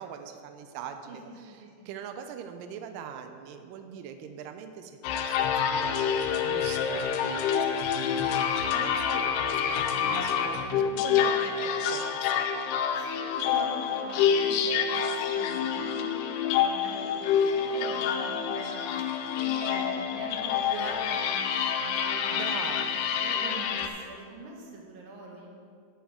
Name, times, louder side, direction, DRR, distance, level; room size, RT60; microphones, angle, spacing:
voice 1, 0.0-8.1 8.7-12.5 22.3-23.0, right 7 dB, 90° right, 7 dB, 1.9 m, -42 dB
voice 2, 1.6-1.9 9.9-11.4 12.9-15.1 15.3-16.2 16.6-18.9 19.3-22.8 23.2-25.5, right 2 dB, 70° right, -1 dB, 2.9 m, -43 dB
sound 1, 5.0-23.9, left 7 dB, 90° left, 2.7 m, -27 dB
10.5 x 9.2 x 3.7 m, 2.2 s
omnidirectional pair, 4.5 m